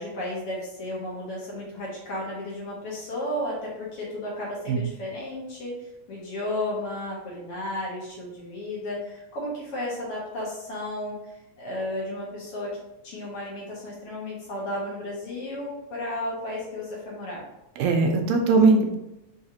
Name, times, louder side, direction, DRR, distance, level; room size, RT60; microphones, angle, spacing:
voice 1, 0.0-17.4, left 1 dB, 60° left, -5 dB, 1.7 m, -33 dB
voice 2, 17.8-19.0, right 3 dB, 80° right, 3 dB, 1.9 m, -20 dB
4.9 x 3.1 x 2.8 m, 0.92 s
omnidirectional pair, 3.3 m